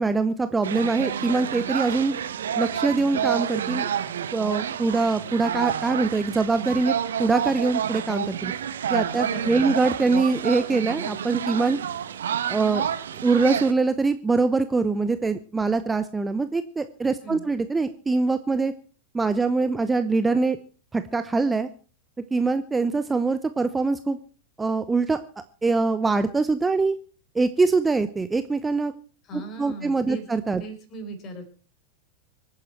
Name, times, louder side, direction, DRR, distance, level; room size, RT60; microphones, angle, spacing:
voice 1, 0.0-2.2 2.6-3.9 4.3-8.5 8.9-11.8 12.5-12.8 13.2-18.7 19.1-20.6 20.9-21.7 22.3-24.2 24.6-25.2 25.6-26.9 27.3-28.9 29.3-30.6, right 3 dB, 10° right, 11 dB, 0.8 m, -23 dB
sound 1, 0.6-13.7, right 9 dB, 65° right, 1.1 m, -29 dB
voice 2, 9.2-9.7 17.2-17.4 29.2-30.3 30.6-31.5, right 1 dB, 30° left, 7 dB, 4.8 m, -38 dB
25.0 x 9.7 x 4.5 m, 0.37 s
figure-of-eight pair, 90°, 0 cm